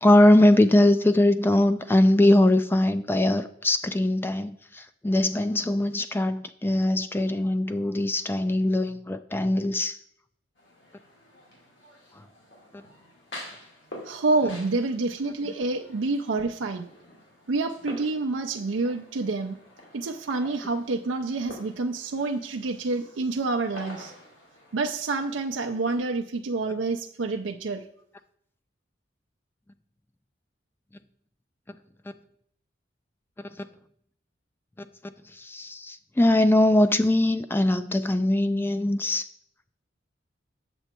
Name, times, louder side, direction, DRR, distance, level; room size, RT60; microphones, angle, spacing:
voice 1, 0.0-10.0 12.7-12.8 33.4-33.7 34.8-34.9 35.3-39.3, left 1 dB, 10° left, 0.3 m, -21 dB
sound 1, 10.6-26.0, left 1 dB, 70° left, 2.4 m, -48 dB
voice 2, 14.0-16.9 17.5-19.6 19.9-24.1 24.7-27.9, right 3 dB, 85° right, 0.5 m, -28 dB
7.9 x 6.9 x 4.4 m
head